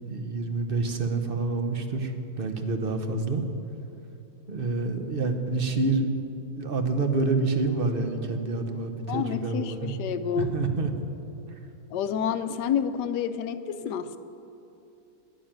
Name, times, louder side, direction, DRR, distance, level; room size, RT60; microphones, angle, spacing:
voice 1, 0.1-3.4 4.5-6.1 6.6-9.9 10.4-10.9, right 3 dB, 35° right, 6 dB, 1.0 m, -27 dB
voice 2, 9.1-10.5 11.9-14.2, left 8 dB, 70° left, 11 dB, 1.2 m, -29 dB
12.5 x 11.0 x 9.0 m, 2.8 s
omnidirectional pair, 2.1 m